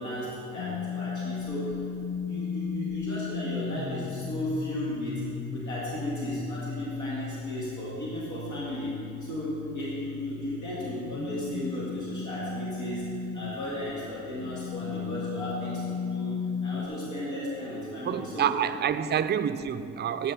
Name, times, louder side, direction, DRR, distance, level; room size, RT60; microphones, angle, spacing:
voice 1, 0.0-1.8 2.3-5.2 5.5-9.0 9.2-16.4 16.6-18.5 18.9-19.1, equal, 70° left, 2.1 m, -35 dB
sound 1, 0.6-13.6 14.2-16.9, left 6 dB, 25° left, 0.6 m, -36 dB
voice 2, 18.0-20.3, right 9 dB, 35° right, 0.4 m, -28 dB
9.0 x 5.3 x 5.7 m
cardioid pair, 90°, 30 cm